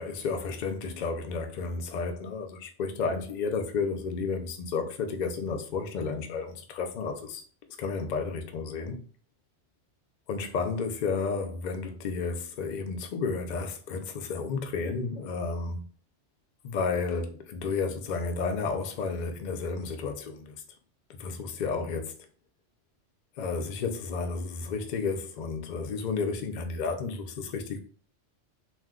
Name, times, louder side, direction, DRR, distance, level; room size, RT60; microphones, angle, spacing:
voice 1, 0.0-7.4 7.8-9.0 10.3-15.8 16.6-20.6 21.2-22.1 23.4-27.8, left 4 dB, 65° left, 0.4 m, -32 dB
2.5 x 2.1 x 3.5 m
omnidirectional pair, 1.3 m